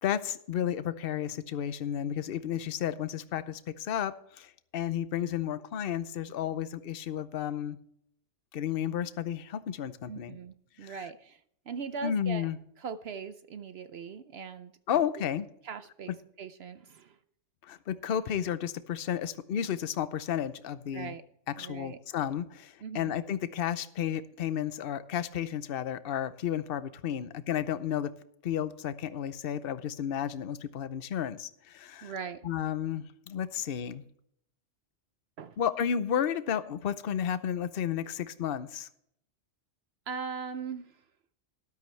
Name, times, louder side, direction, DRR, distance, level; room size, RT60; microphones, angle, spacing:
voice 1, 0.0-7.8 8.5-10.4 10.8-10.9 12.0-12.6 14.9-15.5 17.6-21.1 21.6-28.1 28.4-32.1 32.4-34.0 35.6-38.9, left 9 dB, 55° left, 13 dB, 0.9 m, -32 dB
voice 2, 10.1-12.5 12.8-14.7 15.6-17.2 20.9-21.2 21.6-22.0 22.8-23.1 32.0-32.5 35.4-35.6 40.1-41.0, right 6 dB, 65° right, 11 dB, 0.8 m, -40 dB
13.0 x 12.0 x 3.3 m, 0.71 s
omnidirectional pair, 1.2 m